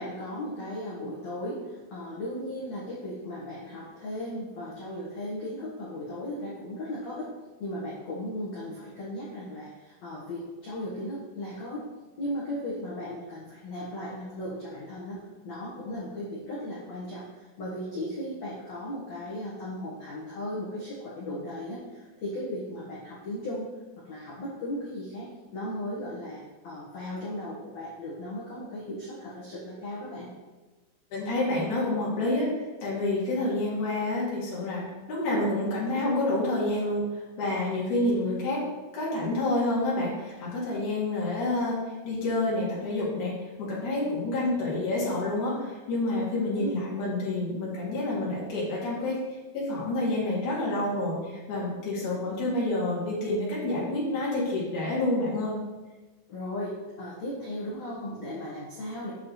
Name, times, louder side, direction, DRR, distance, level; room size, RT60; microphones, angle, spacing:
voice 1, 0.0-7.3 7.6-11.8 12.2-23.7 24.1-26.4 26.6-30.3 46.5-46.9 56.3-59.1, left 1 dB, 75° left, -8 dB, 1.6 m, -36 dB
voice 2, 31.1-32.5 32.8-37.0 37.4-38.6 38.9-41.8 42.0-43.3 43.6-49.2 49.5-55.5, left 2 dB, 45° left, -7 dB, 3.4 m, -28 dB
8.6 x 7.0 x 3.2 m, 1.2 s
omnidirectional pair, 5.8 m